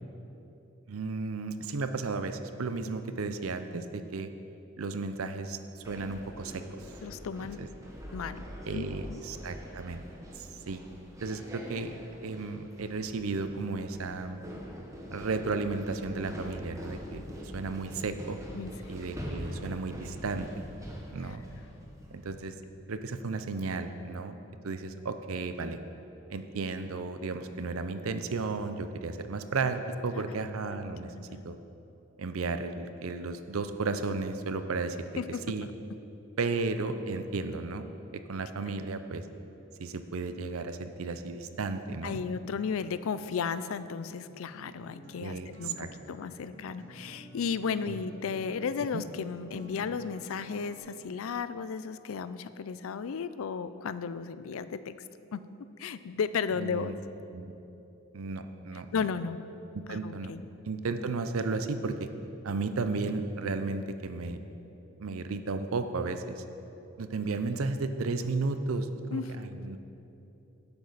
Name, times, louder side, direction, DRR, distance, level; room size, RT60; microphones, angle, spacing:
voice 1, 0.9-4.3 4.8-5.6 5.9-6.8 7.4-7.7 8.7-10.0 10.3-10.8 11.2-14.4 15.1-18.4 18.9-20.6 21.1-21.4 22.1-22.5 22.9-24.4 24.6-25.8 26.3-31.1 31.4-31.6 32.2-35.0 35.5-35.7 36.4-37.9 38.3-39.2 39.8-42.2 45.2-45.9 47.9-48.0 48.9-49.0 56.6-56.9 57.3-57.5 58.1-59.0 59.7-60.3 60.7-62.1 62.4-64.4 65.0-66.4 67.0-69.8, right 3 dB, 90° right, 9 dB, 0.6 m, -34 dB
sound 1, 5.8-22.3, equal, 15° right, 1.0 m, -44 dB
voice 2, 7.0-7.6 8.1-8.4 8.7-9.2 18.5-18.9 21.3-21.4 31.1-31.4 35.2-35.4 42.0-54.9 55.3-55.4 55.8-56.9 58.9-59.4 59.9-60.4 69.1-69.3, left 6 dB, 80° left, 14 dB, 0.4 m, -34 dB
Acoustic guitar, 42.8-50.8, equal, 70° right, 1.4 m, -51 dB
11.5 x 8.4 x 4.0 m, 2.9 s
head